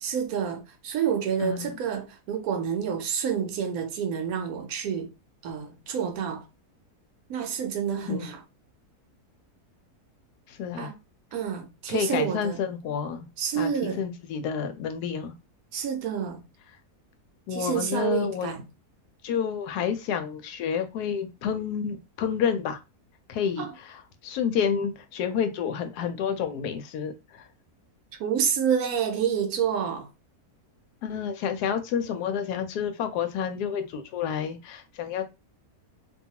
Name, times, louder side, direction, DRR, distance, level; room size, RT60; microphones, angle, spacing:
voice 1, 0.0-5.1 5.4-6.4 7.3-8.4 10.7-10.9 11.3-12.6 13.4-14.0 15.7-16.4 17.5-18.6 23.6-23.7 28.2-30.1, right 8 dB, 75° right, 1.0 m, -28 dB
voice 2, 1.4-1.8 8.1-8.3 10.5-10.9 11.9-13.3 13.6-15.3 17.5-18.5 19.2-22.8 23.3-27.5 31.0-35.2, left 7 dB, 90° left, 1.1 m, -29 dB
2.6 x 2.3 x 2.8 m
omnidirectional pair, 1.6 m